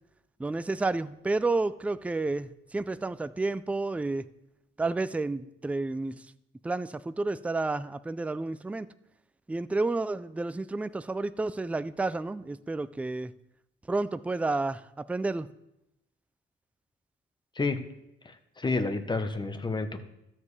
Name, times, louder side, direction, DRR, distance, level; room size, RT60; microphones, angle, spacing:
voice 1, 0.4-4.3 4.8-6.2 6.6-8.9 9.5-13.3 13.9-15.5, right 3 dB, 5° right, 14 dB, 0.3 m, -30 dB
voice 2, 18.2-20.0, left 3 dB, 20° left, 9 dB, 1.0 m, -30 dB
13.0 x 7.3 x 3.3 m, 0.84 s
cardioid pair, 90°, 20 cm